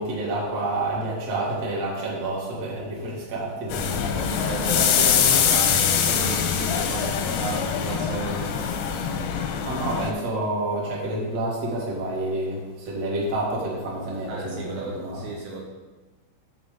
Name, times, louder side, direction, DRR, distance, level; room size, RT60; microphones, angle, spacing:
voice 1, 0.0-4.3 9.7-15.2, right 2 dB, 45° right, -5 dB, 2.6 m, -29 dB
sound 1, 3.7-10.1, left 7 dB, 80° left, 2.4 m, -23 dB
voice 2, 4.1-8.7 14.3-15.6, right 3 dB, 80° right, -1 dB, 2.9 m, -33 dB
7.5 x 3.9 x 6.7 m, 1.3 s
omnidirectional pair, 5.1 m